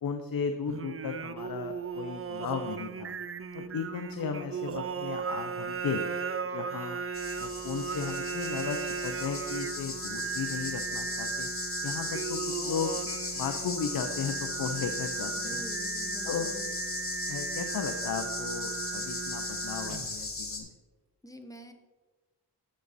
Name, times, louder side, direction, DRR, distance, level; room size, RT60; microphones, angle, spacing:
voice 1, 0.0-3.1 3.5-6.0 6.4-7.0 7.4-11.5 11.8-13.0 13.3-15.3 16.2-16.5 17.3-20.7, left 6 dB, 50° left, 7 dB, 0.7 m, -35 dB
Singing, 0.7-20.3, right 6 dB, 30° right, 0.5 m, -37 dB
sound 1, 7.1-20.6, left 3 dB, 30° left, 1.4 m, -37 dB
voice 2, 15.4-16.7 21.2-21.7, equal, 10° left, 6 dB, 0.9 m, -46 dB
9.4 x 6.7 x 4.1 m, 1.3 s
cardioid pair, 75°, 44 cm